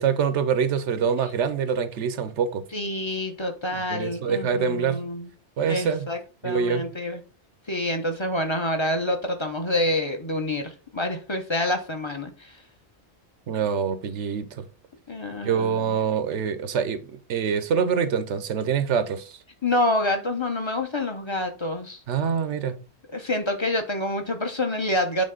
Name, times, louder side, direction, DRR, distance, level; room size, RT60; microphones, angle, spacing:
voice 1, 0.0-2.6 3.7-5.1 5.6-6.1 6.4-6.9 13.5-14.6 15.4-19.4 22.1-22.8, right 7 dB, 85° right, 1.0 m, -25 dB
voice 2, 2.7-5.3 5.6-6.2 6.4-7.2 7.7-12.6 15.1-16.0 19.6-22.0 23.1-25.2, left 1 dB, 25° left, 0.9 m, -27 dB
8.6 x 3.4 x 3.8 m
omnidirectional pair, 1.2 m